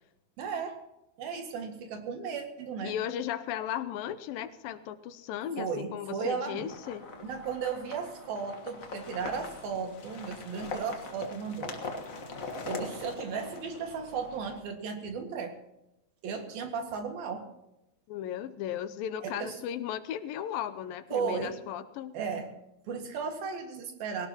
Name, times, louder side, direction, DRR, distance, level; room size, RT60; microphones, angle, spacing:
voice 1, 0.4-0.8 1.2-3.0 5.6-6.7 7.2-11.8 12.7-15.5 16.2-17.5 19.2-19.6 21.1-21.6 22.1-22.5 22.9-24.3, right 5 dB, 80° right, 4 dB, 3.7 m, -35 dB
voice 2, 2.8-7.1 18.1-22.2, left 10 dB, 80° left, 12 dB, 2.4 m, -36 dB
sound 1, 6.6-14.6, left 3 dB, 50° left, 1.0 m, -42 dB
21.0 x 17.5 x 3.0 m, 0.89 s
omnidirectional pair, 4.2 m